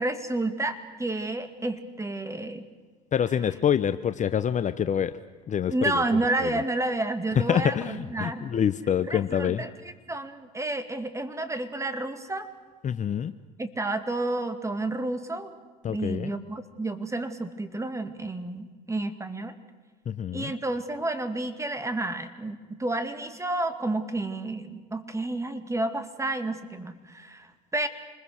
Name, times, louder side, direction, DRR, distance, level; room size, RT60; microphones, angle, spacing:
voice 1, 0.0-2.6 5.7-8.5 9.0-12.5 13.6-15.6 15.9-19.5 20.3-27.9, right 2 dB, 15° right, 10 dB, 2.2 m, -30 dB
voice 2, 3.1-5.1 5.5-6.0 7.5-9.6 12.8-13.3 15.8-16.3 20.1-20.5, left 8 dB, 35° left, 12 dB, 0.8 m, -26 dB
27.0 x 21.0 x 6.4 m, 1.4 s
supercardioid pair, 80°, 21 cm